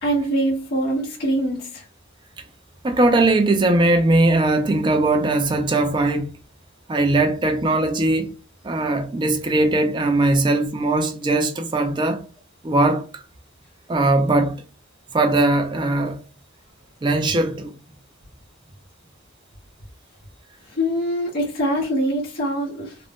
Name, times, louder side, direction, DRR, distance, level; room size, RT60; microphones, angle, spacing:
voice 1, 0.0-1.8 20.7-23.0, right 1 dB, 45° left, 0.8 m, -23 dB
voice 2, 2.8-6.3 6.9-8.3 8.6-12.2 12.6-13.2 13.9-14.5 15.1-16.2 17.0-17.8, right 2 dB, 20° right, 0.3 m, -20 dB
2.5 x 2.1 x 3.4 m
head